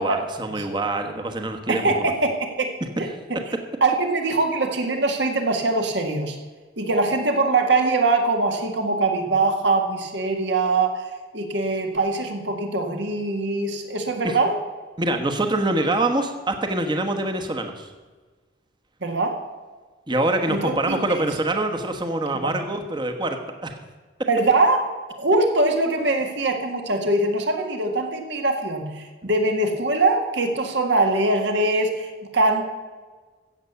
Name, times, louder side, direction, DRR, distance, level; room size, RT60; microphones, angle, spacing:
voice 1, 0.0-2.1 14.2-14.4 15.0-17.9 20.1-23.8, right 2 dB, 25° right, 5 dB, 1.2 m, -25 dB
voice 2, 1.7-2.7 3.0-3.4 3.8-6.4 6.8-11.1 11.3-14.6 19.0-19.4 20.5-21.2 22.4-22.6 24.3-24.8 25.2-32.6, right 2 dB, 65° right, 4 dB, 1.9 m, -22 dB
14.5 x 8.2 x 6.9 m, 1.4 s
head